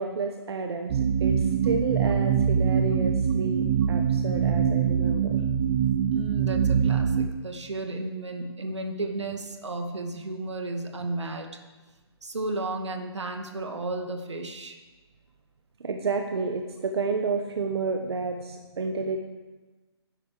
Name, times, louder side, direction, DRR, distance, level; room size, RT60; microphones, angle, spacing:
voice 1, 0.0-5.4 15.8-19.2, right 4 dB, 65° right, 4 dB, 1.2 m, -30 dB
sound 1, 0.9-7.3, right 7 dB, 30° right, 0.6 m, -24 dB
voice 2, 6.1-11.6 12.2-14.8, right 2 dB, 90° right, 4 dB, 2.1 m, -33 dB
11.0 x 10.0 x 6.7 m, 1.2 s
hypercardioid pair, 155°, 14 cm